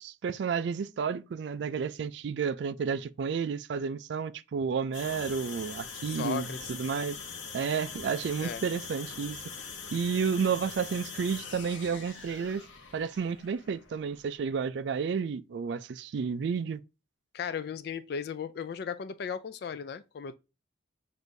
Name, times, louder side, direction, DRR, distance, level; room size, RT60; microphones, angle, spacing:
voice 1, 0.0-7.2 7.5-9.4 9.9-12.6 12.9-16.8, right 6 dB, 65° right, 0.3 m, -31 dB
sound 1, 4.9-14.7, left 5 dB, 75° left, 0.8 m, -43 dB
voice 2, 6.1-6.6 8.4-8.6 17.3-20.4, left 6 dB, 55° left, 0.3 m, -36 dB
6.2 x 2.5 x 2.6 m
head